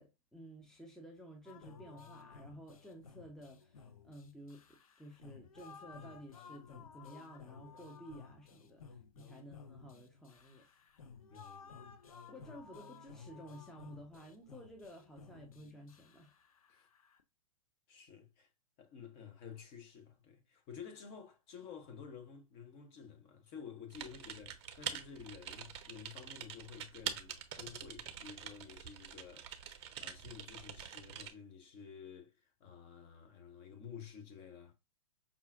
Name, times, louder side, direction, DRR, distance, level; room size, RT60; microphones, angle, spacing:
voice 1, 0.0-4.6 5.0-10.6 12.3-16.3, equal, 5° left, 0.6 m, -53 dB
sound 1, 1.5-17.2, left 5 dB, 70° left, 0.6 m, -56 dB
voice 2, 11.3-11.8 16.7-16.9 17.9-18.5 18.8-34.7, left 7 dB, 35° left, 0.9 m, -52 dB
Typing, 23.9-31.3, right 8 dB, 45° right, 0.6 m, -45 dB
5.4 x 2.4 x 2.4 m
figure-of-eight pair, 110°, 19 cm